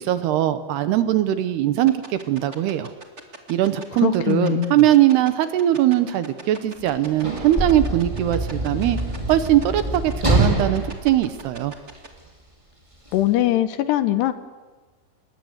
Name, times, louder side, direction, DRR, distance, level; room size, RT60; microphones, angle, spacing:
voice 1, 0.0-2.9 3.5-9.0 9.3-11.7, right 12 dB, 75° right, 11 dB, 2.8 m, -20 dB
sound 1, 1.9-12.1, right 3 dB, 35° right, 1.1 m, -40 dB
voice 2, 4.0-4.8 13.1-14.3, left 14 dB, 75° left, 11 dB, 2.9 m, -21 dB
Sliding door / Slam, 6.8-12.2 13.1-13.2, right 1 dB, 10° right, 2.7 m, -25 dB
27.5 x 21.0 x 8.1 m, 1.3 s
omnidirectional pair, 5.2 m